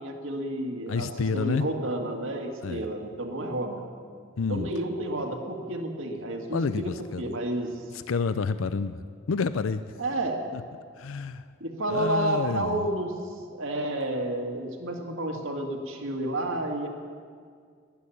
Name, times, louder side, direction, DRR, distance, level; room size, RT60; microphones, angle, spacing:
voice 1, 0.0-1.1 1.3-3.8 4.5-7.7 10.0-10.5 11.6-13.1 13.6-16.9, right 1 dB, 80° right, 2 dB, 2.1 m, -30 dB
voice 2, 0.9-1.7 2.6-2.8 4.4-4.7 6.5-7.2 7.9-9.0 9.3-9.9 10.5-10.6 11.0-11.4 11.9-12.9, left 4 dB, 90° left, 13 dB, 0.5 m, -29 dB
13.0 x 11.0 x 9.9 m, 2.1 s
head